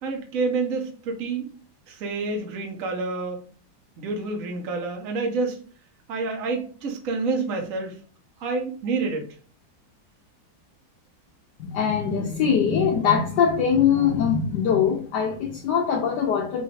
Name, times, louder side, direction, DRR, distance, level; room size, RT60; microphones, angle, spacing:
voice 1, 0.0-1.5 1.9-3.4 4.0-5.6 6.1-8.0 8.4-9.3, right 3 dB, 55° right, 2 dB, 1.2 m, -28 dB
voice 2, 11.6-16.6, left 7 dB, 70° left, 1 dB, 1.3 m, -22 dB
5.7 x 2.7 x 3.2 m, 0.43 s
omnidirectional pair, 2.0 m